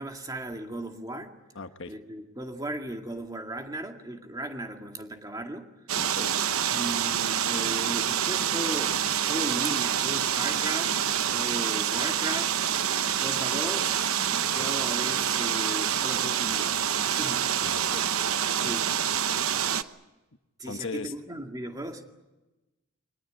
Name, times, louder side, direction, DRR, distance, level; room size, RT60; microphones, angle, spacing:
voice 1, 0.0-1.4 1.9-5.7 6.7-11.0 11.3-12.6 13.2-17.4 18.6-18.9 20.6-22.0, right 1 dB, 15° right, 4 dB, 2.1 m, -36 dB
voice 2, 1.5-1.9 6.0-6.3 17.6-18.1 20.6-21.1, left 4 dB, 60° left, 9 dB, 1.2 m, -38 dB
sound 1, 5.9-19.8, right 9 dB, 70° right, 0.9 m, -27 dB
23.0 x 20.0 x 9.3 m, 1.1 s
head